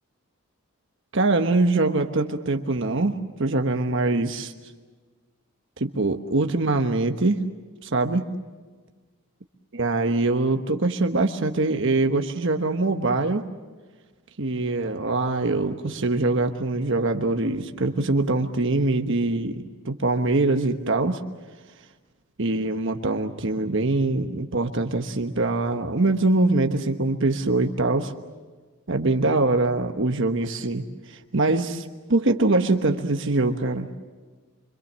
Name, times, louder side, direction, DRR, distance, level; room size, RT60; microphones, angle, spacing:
voice 1, 1.1-4.5 5.8-7.5 7.8-8.2 9.7-13.5 14.4-21.2 22.4-28.1 28.9-33.9, right 2 dB, 60° right, 5 dB, 1.2 m, -23 dB
26.0 x 25.5 x 7.5 m, 1.4 s
head